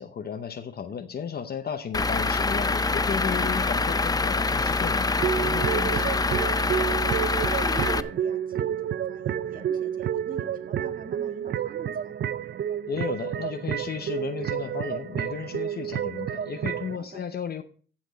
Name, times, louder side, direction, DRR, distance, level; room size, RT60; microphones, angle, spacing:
voice 1, 0.0-6.3 12.9-17.6, left 7 dB, 55° left, 7 dB, 0.8 m, -34 dB
Truck / Idling, 1.9-8.0, left 3 dB, 20° left, 0.5 m, -25 dB
voice 2, 3.3-3.9 6.9-7.3 7.6-12.5 17.0-17.2, right 3 dB, 45° right, 4 dB, 2.0 m, -44 dB
sound 1, 5.2-17.0, right 9 dB, 60° right, 0.5 m, -30 dB
15.0 x 6.0 x 4.0 m, 0.42 s
cardioid pair, 90°, 20 cm